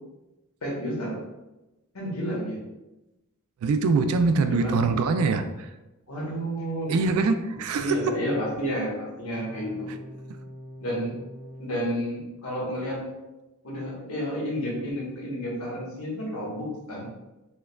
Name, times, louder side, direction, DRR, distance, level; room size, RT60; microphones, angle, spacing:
voice 1, 0.6-1.2 1.9-2.6 4.5-4.8 6.1-6.9 7.8-9.9 10.8-11.1 11.6-13.0 13.6-17.1, equal, 90° left, -3 dB, 1.1 m, -30 dB
voice 2, 3.6-5.7 6.9-8.2, right 4 dB, 75° right, 9 dB, 0.3 m, -23 dB
sound 1, 4.4-5.0 9.3-11.9, equal, 45° right, 0.8 m, -44 dB
4.4 x 2.3 x 2.2 m, 1.0 s
head